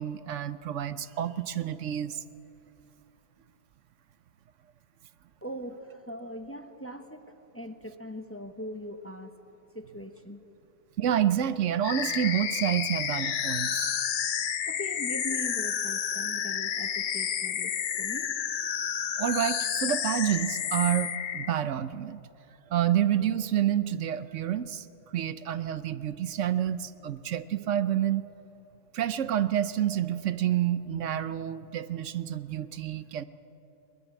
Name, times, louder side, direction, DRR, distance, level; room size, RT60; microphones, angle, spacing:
voice 1, 0.0-2.2 11.0-13.9 19.2-22.2 22.7-28.2 28.9-33.3, right 10 dB, 75° right, 14 dB, 1.1 m, -28 dB
voice 2, 5.4-9.4 9.7-10.4 14.6-18.4, equal, 10° left, 7 dB, 1.0 m, -41 dB
sound 1, 11.8-21.5, left 8 dB, 50° left, 0.7 m, -30 dB
21.0 x 21.0 x 9.2 m, 2.9 s
omnidirectional pair, 1.3 m